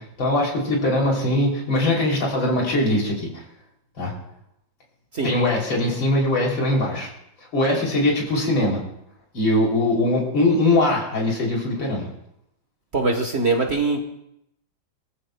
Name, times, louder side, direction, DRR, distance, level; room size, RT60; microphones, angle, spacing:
voice 1, 0.0-3.3 4.0-4.1 5.2-7.1 7.5-8.8 9.3-12.1, left 1 dB, 75° left, -1 dB, 3.9 m, -21 dB
voice 2, 12.9-14.0, right 3 dB, 40° right, 3 dB, 1.3 m, -22 dB
23.0 x 14.0 x 2.2 m, 0.78 s
omnidirectional pair, 2.1 m